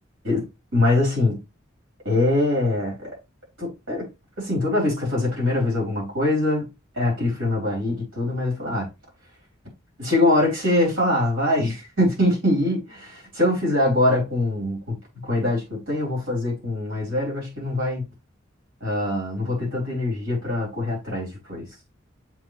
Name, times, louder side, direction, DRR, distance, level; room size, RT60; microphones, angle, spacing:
voice 1, 0.7-1.4 2.0-3.1 3.6-4.1 4.4-6.6 7.0-8.9 10.0-14.9 15.2-18.0 18.8-21.6, left 1 dB, 80° right, 4.2 m, -23 dB
7.3 x 4.1 x 3.2 m
head